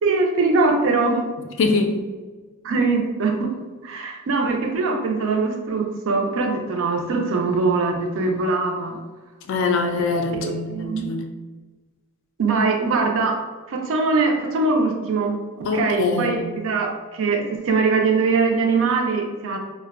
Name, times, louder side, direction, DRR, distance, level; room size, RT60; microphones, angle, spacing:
voice 1, 0.0-1.2 2.6-3.5 3.8-9.0 10.4-11.1 12.4-13.4 13.7-19.6, right 3 dB, 60° right, 2 dB, 0.4 m, -22 dB
voice 2, 1.6-2.0 9.5-11.2 15.6-16.4, left 3 dB, 55° left, 4 dB, 0.3 m, -23 dB
2.5 x 2.1 x 2.3 m, 1.3 s
head